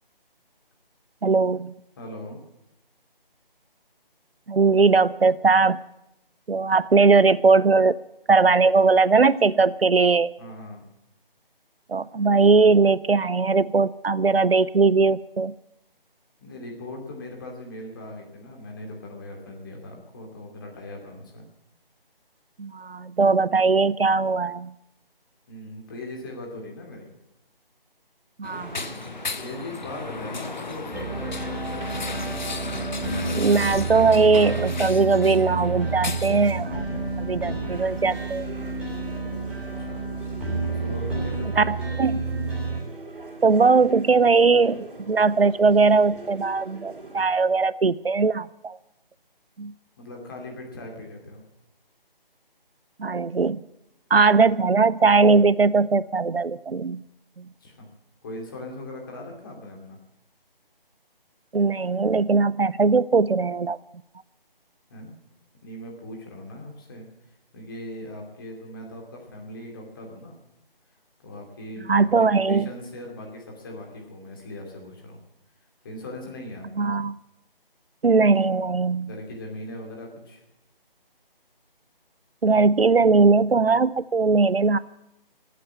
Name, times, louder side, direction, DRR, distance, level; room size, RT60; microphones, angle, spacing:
voice 1, 1.2-1.7 4.5-5.8 6.5-8.0 8.3-10.3 11.9-15.5 22.6-24.7 28.4-28.9 33.3-36.8 37.2-38.5 41.6-42.2 43.4-48.8 49.6-49.7 53.0-53.6 54.1-57.0 57.4-57.5 61.5-63.8 71.9-72.7 76.8-77.1 78.0-79.1 82.4-84.8, right 4 dB, 85° right, 18 dB, 0.7 m, -20 dB
voice 2, 2.0-2.4 10.4-10.8 16.4-21.5 25.5-27.1 29.4-31.4 39.6-40.0 40.6-41.7 50.0-51.4 57.6-57.9 58.2-60.0 64.9-65.1 65.6-67.0 67.5-70.4 71.2-75.2 75.8-76.9 79.0-80.4, left 1 dB, 20° left, 0 dB, 2.6 m, -39 dB
sound 1, 28.4-36.5, left 4 dB, 50° left, 0.9 m, -35 dB
sound 2, 28.5-47.3, right 2 dB, 60° right, 3.4 m, -43 dB
sound 3, 30.9-42.8, right 3 dB, 5° right, 1.9 m, -30 dB
17.5 x 8.6 x 8.5 m, 0.84 s
figure-of-eight pair, 160°, 29 cm